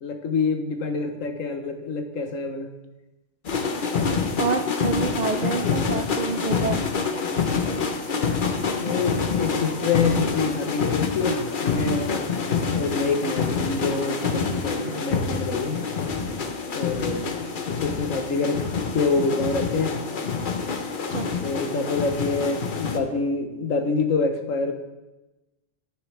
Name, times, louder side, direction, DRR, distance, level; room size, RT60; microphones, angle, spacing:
voice 1, 0.0-2.7 8.7-12.3 12.7-15.8 16.7-18.6 18.9-20.0 21.4-24.7, left 4 dB, 85° left, 6 dB, 1.3 m, -26 dB
sound 1, 3.4-23.0, left 5 dB, 45° left, 0.8 m, -27 dB
voice 2, 4.4-6.8 21.1-21.3, right 5 dB, 85° right, 7 dB, 0.3 m, -27 dB
9.9 x 9.4 x 3.2 m, 1.1 s
omnidirectional pair, 1.3 m